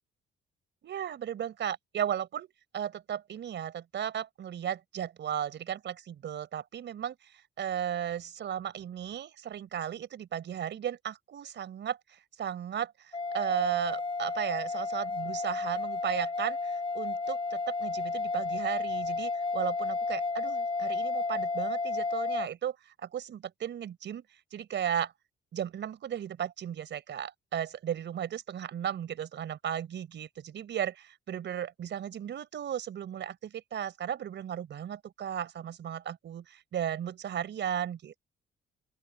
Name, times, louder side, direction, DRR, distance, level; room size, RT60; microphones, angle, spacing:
voice 1, 0.8-7.1 7.6-24.2 24.5-25.1 25.5-38.2, right 9 dB, 65° right, 4.9 m, -35 dB
sound 1, 13.1-22.5, left 3 dB, 25° left, 7.0 m, -32 dB
open air
cardioid pair, 90°, 20 cm